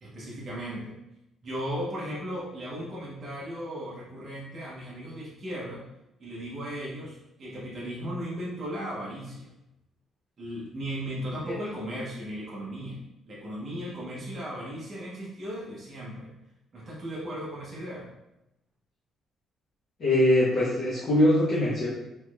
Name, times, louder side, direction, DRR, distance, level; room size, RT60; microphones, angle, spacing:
voice 1, 0.0-1.0 1.4-5.8 6.2-9.5 10.4-13.0 13.3-16.4 16.7-18.1, equal, 25° right, -7 dB, 0.7 m, -36 dB
voice 2, 20.0-21.9, left 1 dB, 35° left, -9 dB, 0.8 m, -22 dB
3.5 x 3.0 x 2.3 m, 0.90 s
cardioid pair, 180°, 0 cm